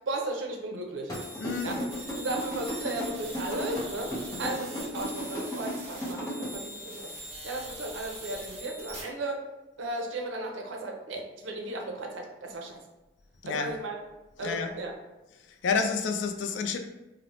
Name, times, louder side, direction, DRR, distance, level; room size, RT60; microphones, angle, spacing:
voice 1, 0.1-1.1 1.6-1.8 2.2-7.1 7.4-9.4 9.8-12.8 13.4-14.0 14.4-15.0, right 2 dB, 85° right, 3 dB, 0.5 m, -35 dB
sound 1, 1.1-6.4, equal, 20° left, 0.6 m, -34 dB
sound 2, 1.1-9.0, right 1 dB, 30° right, 0.7 m, -42 dB
voice 2, 1.4-1.8 13.4-13.7 14.4-14.7 15.6-16.8, left 5 dB, 75° left, 6 dB, 0.3 m, -29 dB
3.0 x 2.0 x 2.7 m, 1.0 s
head